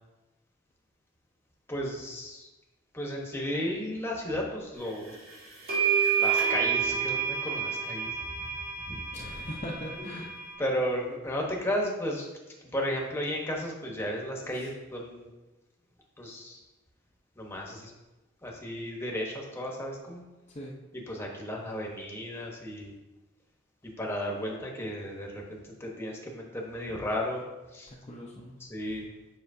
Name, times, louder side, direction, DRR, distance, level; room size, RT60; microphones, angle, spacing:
voice 1, 1.7-2.5 2.9-5.2 6.2-8.2 8.9-9.0 10.0-10.1 10.6-12.3 12.7-15.3 16.2-16.6 17.4-17.9 18.4-20.2 20.9-22.9 23.8-27.4 27.7-27.9 28.6-29.1, equal, 15° left, -1 dB, 1.1 m, -34 dB
sound 1, 5.1-5.2 5.7-10.5, right 7 dB, 50° right, 2.3 m, -29 dB
voice 2, 9.1-10.3 14.5-14.7 20.5-20.7 27.9-28.6, left 1 dB, 30° left, -4 dB, 0.7 m, -40 dB
7.6 x 5.7 x 2.7 m, 1.1 s
head